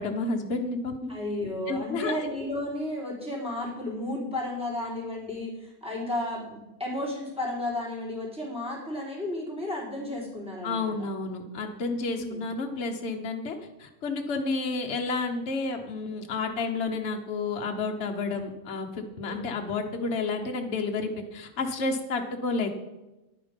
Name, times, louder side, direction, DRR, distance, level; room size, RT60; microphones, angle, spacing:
voice 1, 0.0-1.1 1.7-2.3 10.6-22.7, left 3 dB, 55° left, 2 dB, 1.2 m, -31 dB
voice 2, 1.1-10.9 12.1-12.4 19.3-19.4, left 1 dB, 5° right, -6 dB, 4.1 m, -33 dB
10.5 x 9.4 x 5.2 m, 1.0 s
omnidirectional pair, 1.5 m